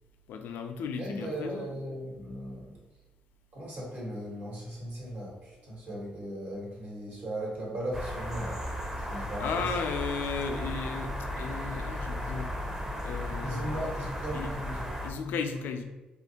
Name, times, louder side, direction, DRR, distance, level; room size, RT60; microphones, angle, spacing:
voice 1, 0.3-1.7 9.2-12.5 13.0-13.9 14.3-14.5 15.0-15.8, left 5 dB, 75° left, 6 dB, 0.3 m, -35 dB
voice 2, 1.0-2.8 3.5-8.6 9.1-9.7 13.4-14.9, right 1 dB, 55° right, -4 dB, 1.3 m, -37 dB
sound 1, 7.9-15.1, equal, 10° right, 0.6 m, -35 dB
2.8 x 2.4 x 2.8 m, 1.1 s
supercardioid pair, 60°, 4 cm